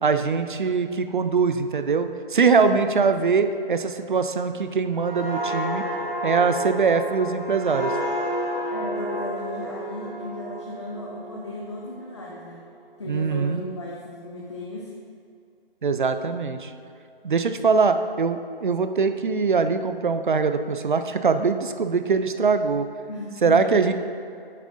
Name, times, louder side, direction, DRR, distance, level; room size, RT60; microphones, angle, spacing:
voice 1, 0.0-5.8 6.2-7.9 13.1-13.6 15.8-16.7 17.2-22.9 23.4-23.9, right 5 dB, 55° right, 9 dB, 0.5 m, -22 dB
sound 1, 4.9-12.4 12.8-13.0, right 1 dB, 20° right, 0.9 m, -31 dB
voice 2, 8.7-12.6 13.0-14.9 23.1-23.9, left 2 dB, 30° left, -2 dB, 0.6 m, -35 dB
9.1 x 7.5 x 2.6 m, 2.4 s
figure-of-eight pair, 145°, 30 cm